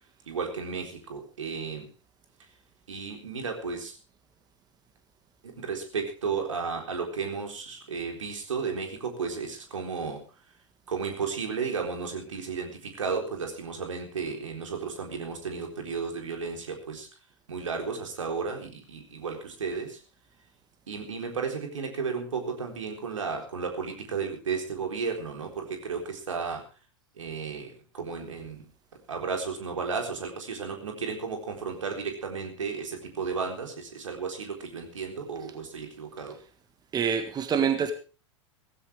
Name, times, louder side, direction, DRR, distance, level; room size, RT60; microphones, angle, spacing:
voice 1, 0.3-1.9 2.9-4.0 5.4-10.2 10.9-17.1 17.5-20.0 20.9-26.7 27.2-28.6 29.1-36.4, right 5 dB, 75° right, 3 dB, 4.0 m, -33 dB
voice 2, 36.9-37.9, right 7 dB, 25° right, 8 dB, 1.7 m, -26 dB
17.0 x 15.0 x 3.6 m, 0.35 s
figure-of-eight pair, 95°, 16 cm